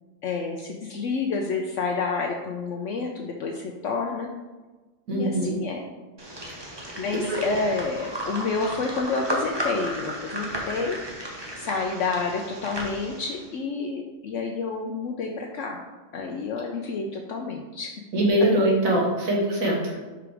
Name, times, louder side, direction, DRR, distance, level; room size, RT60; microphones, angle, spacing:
voice 1, 0.2-4.3 5.1-5.8 7.0-11.0 11.6-15.8 16.1-17.9, left 4 dB, 65° left, 1 dB, 1.0 m, -29 dB
voice 2, 5.1-5.5 7.3-7.4 18.1-20.0, right 1 dB, 80° right, -2 dB, 2.0 m, -22 dB
sound 1, 6.2-13.5, right 1 dB, 20° right, 1.1 m, -34 dB
5.8 x 5.1 x 4.8 m, 1.3 s
omnidirectional pair, 1.4 m